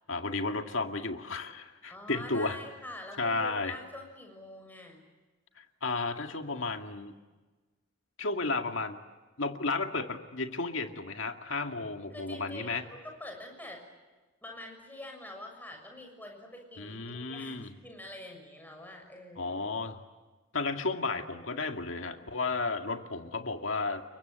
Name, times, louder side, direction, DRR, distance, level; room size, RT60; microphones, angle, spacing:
voice 1, 0.1-2.6 3.2-3.8 5.6-7.1 8.2-9.0 9.4-12.8 16.8-17.7 19.4-20.0 20.5-24.0, left 3 dB, 70° left, 5 dB, 2.1 m, -33 dB
voice 2, 1.9-5.0 12.1-13.9 14.4-19.6, left 1 dB, 10° left, 3 dB, 6.6 m, -46 dB
30.0 x 23.5 x 8.2 m, 1.2 s
head